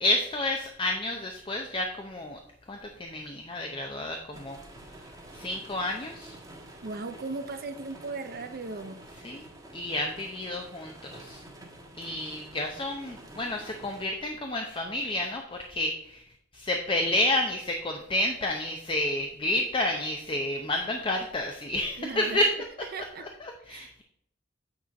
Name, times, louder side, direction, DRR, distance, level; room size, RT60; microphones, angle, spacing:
voice 1, 0.0-2.4 2.7-4.6 5.3-6.4 9.2-9.5 9.7-11.4 12.0-16.2 16.5-22.5 23.2-24.0, left 1 dB, 25° left, 3 dB, 0.6 m, -30 dB
sound 1, 4.3-14.1, right 1 dB, 20° right, 1.3 m, -48 dB
voice 2, 6.8-9.0 22.0-22.4 22.9-23.3 23.7-24.0, right 3 dB, 45° right, 8 dB, 0.6 m, -37 dB
8.7 x 4.3 x 5.2 m, 0.73 s
head